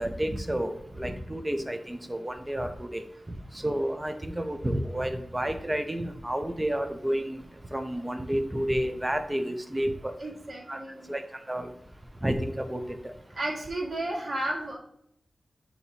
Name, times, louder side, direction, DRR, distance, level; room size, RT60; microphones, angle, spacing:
voice 1, 0.0-3.0 3.3-7.4 7.7-10.1 10.7-10.8 11.1-11.2 11.5-11.7 12.2-13.1, right 1 dB, 15° right, 7 dB, 0.6 m, -30 dB
voice 2, 10.2-11.1 13.3-14.8, right 1 dB, 50° right, -3 dB, 1.8 m, -33 dB
8.4 x 2.9 x 4.1 m, 0.74 s
wide cardioid pair, 125°, 0 cm